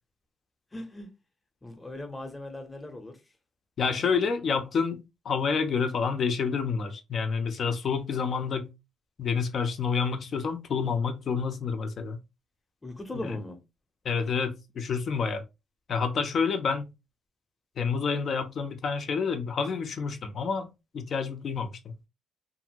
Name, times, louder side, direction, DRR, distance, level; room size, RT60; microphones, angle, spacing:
voice 1, 0.7-1.1 1.6-3.1 12.8-13.6, left 1 dB, 20° left, 0.9 m, -38 dB
voice 2, 3.8-8.7 9.2-12.2 13.2-13.4 14.0-15.4 15.9-16.9 17.8-20.7 20.9-21.9, left 5 dB, 55° left, 0.6 m, -28 dB
2.7 x 2.5 x 2.8 m
cardioid pair, 90°, 0 cm